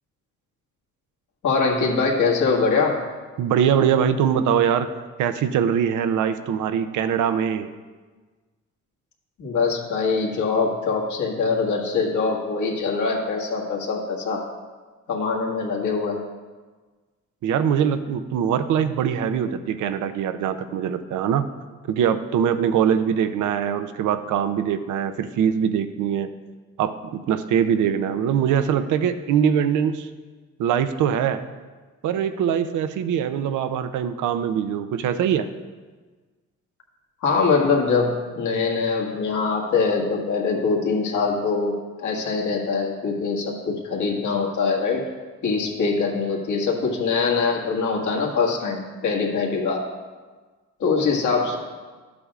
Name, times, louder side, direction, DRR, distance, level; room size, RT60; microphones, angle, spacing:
voice 1, 1.4-3.0 9.4-14.4 15.1-16.2 37.2-45.1 45.4-49.9 50.8-51.6, left 4 dB, 75° left, -1 dB, 1.8 m, -23 dB
voice 2, 3.4-4.9 5.2-7.7 17.4-21.4 21.9-26.3 26.8-30.1 30.6-31.5 32.0-35.5, right 8 dB, 80° right, 10 dB, 0.6 m, -22 dB
12.5 x 8.5 x 2.5 m, 1.4 s
cardioid pair, 90°, 30 cm